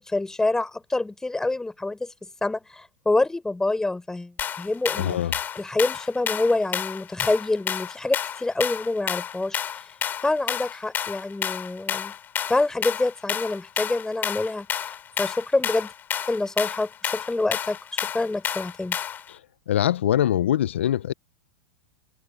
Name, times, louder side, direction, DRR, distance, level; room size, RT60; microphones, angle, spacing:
voice 1, 0.1-2.1 2.4-5.2 5.5-9.6 10.2-12.1 12.5-15.9 16.3-19.0, left 2 dB, 10° left, 4.4 m, -26 dB
sound 1, 4.4-19.3, left 9 dB, 30° left, 3.1 m, -30 dB
voice 2, 5.0-5.3 19.3-19.4 19.7-21.1, left 11 dB, 80° left, 0.6 m, -23 dB
hypercardioid pair, 105°, 7 cm